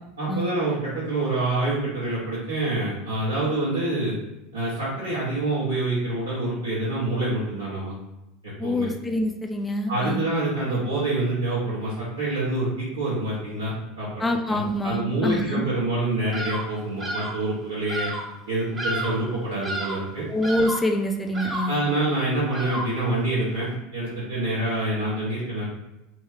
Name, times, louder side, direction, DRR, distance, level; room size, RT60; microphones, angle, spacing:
voice 1, 0.2-4.1 4.5-7.9 8.6-8.9 9.9-18.1 18.5-20.2 21.7-25.7, right 2 dB, 80° right, -11 dB, 1.3 m, -26 dB
voice 2, 8.6-10.2 14.2-15.6 20.3-21.8, left 1 dB, 15° left, 5 dB, 0.5 m, -25 dB
Bird vocalization bird call bird song, 16.3-16.7 17.0-17.4 17.9-18.3 18.8-19.3 19.6-20.1 20.4-20.9 21.3-21.8 22.5-23.0, right 1 dB, 20° right, 0.8 m, -31 dB
3.3 x 3.0 x 3.4 m, 0.94 s
figure-of-eight pair, 75°, 0 cm